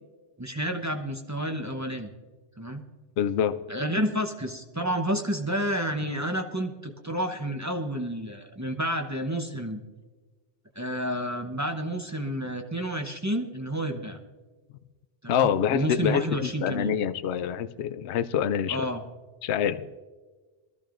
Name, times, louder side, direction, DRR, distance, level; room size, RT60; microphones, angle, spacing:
voice 1, 0.4-2.1 2.6-2.8 3.7-9.8 10.7-14.2 15.2-16.9 18.7-19.0, equal, 15° right, 3 dB, 0.7 m, -30 dB
voice 2, 3.2-3.7 15.3-18.8 19.4-20.0, left 9 dB, 70° left, 11 dB, 0.8 m, -26 dB
21.5 x 14.0 x 2.5 m, 1.4 s
omnidirectional pair, 1.2 m